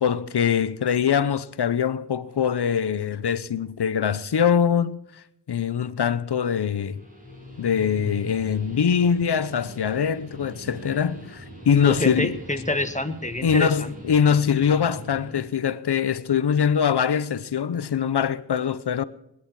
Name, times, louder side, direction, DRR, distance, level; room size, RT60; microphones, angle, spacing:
voice 1, 0.0-5.0 5.5-7.0 7.6-12.4 13.4-19.0, left 7 dB, 70° left, 0.9 m, -23 dB
Guitar, 6.7-15.5, right 1 dB, 20° right, 7.6 m, -42 dB
voice 2, 11.8-13.9, left 1 dB, 15° left, 1.7 m, -27 dB
21.0 x 10.5 x 4.8 m
cardioid pair, 45°, 42 cm